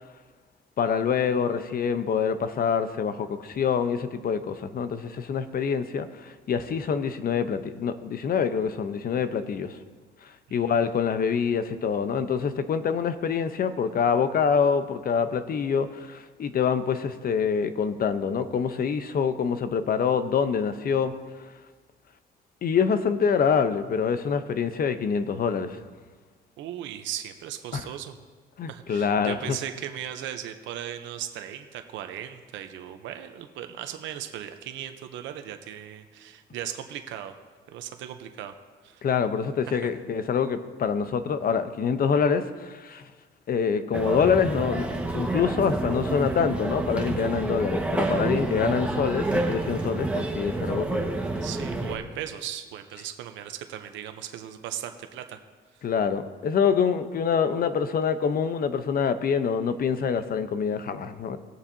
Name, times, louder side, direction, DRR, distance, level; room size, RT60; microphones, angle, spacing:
voice 1, 0.8-9.8 10.2-21.1 22.6-25.8 27.7-27.9 28.6-29.6 39.0-43.0 43.5-44.9 45.1-51.1 55.8-61.4, left 6 dB, 50° left, 10 dB, 0.8 m, -26 dB
voice 2, 26.6-28.2 28.7-37.3 37.7-38.5 38.8-39.0 39.7-39.8 51.4-55.4, right 10 dB, 90° right, 8 dB, 0.7 m, -37 dB
sound 1, 43.9-52.0, right 2 dB, 5° right, 1.3 m, -28 dB
20.0 x 7.2 x 2.7 m, 1.4 s
cardioid pair, 95°, 19 cm